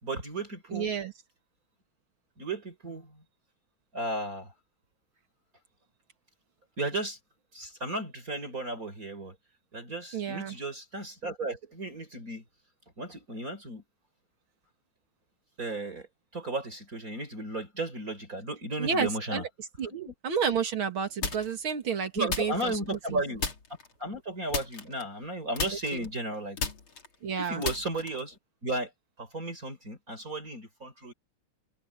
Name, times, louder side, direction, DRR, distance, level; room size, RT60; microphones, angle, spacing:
voice 1, 0.0-0.9 2.4-3.1 3.9-4.5 6.8-7.2 7.5-9.3 9.7-12.4 13.0-13.8 15.6-16.1 16.3-19.4 19.9-20.1 22.1-23.4 24.0-26.6 27.4-28.9 29.2-31.1, right 2 dB, 40° right, 4.8 m, -34 dB
voice 2, 0.7-1.1 10.1-10.6 18.8-19.9 20.2-22.8 23.1-23.2 24.9-25.0 25.9-26.1 27.2-27.6, right 6 dB, 80° right, 2.9 m, -31 dB
sound 1, 21.2-21.7 22.3-23.1 23.4-23.9 24.5-25.3 25.6-28.3, left 4 dB, 90° left, 3.7 m, -34 dB
omnidirectional pair, 2.2 m